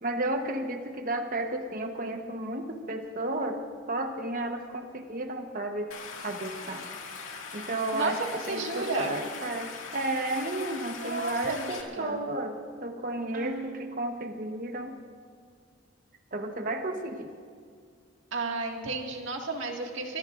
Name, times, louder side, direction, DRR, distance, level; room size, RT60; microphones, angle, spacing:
voice 1, 0.0-3.6 3.9-5.9 6.2-6.8 7.5-8.2 8.5-12.6 12.8-14.9 16.3-17.3, right 2 dB, 45° right, 5 dB, 1.1 m, -32 dB
Stream, 5.9-11.8, left 5 dB, 85° left, 2.1 m, -41 dB
voice 2, 8.5-9.1 11.0-12.2 13.3-14.1 18.3-20.2, right 3 dB, 70° right, 1 dB, 2.0 m, -33 dB
25.5 x 20.5 x 2.6 m, 2.1 s
head